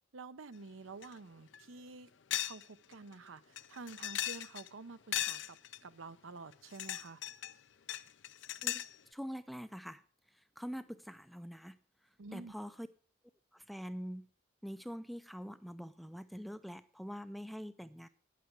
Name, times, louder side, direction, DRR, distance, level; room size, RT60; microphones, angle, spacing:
voice 1, 0.1-2.1 2.4-5.6 5.8-7.2 12.2-12.5, right 3 dB, 80° right, 12 dB, 0.7 m, -49 dB
sound 1, 1.0-1.1 1.5-1.6 2.3-2.6 2.9-3.0 3.6-4.7 5.1-5.8 6.5-7.5 7.9-9.0, left 12 dB, 60° left, 0.5 m, -37 dB
voice 2, 9.1-10.0 10.3-11.8 12.0-12.9 13.5-14.3 14.6-18.1, equal, ahead, 12 dB, 0.4 m, -45 dB
10.0 x 8.5 x 6.0 m, 0.41 s
head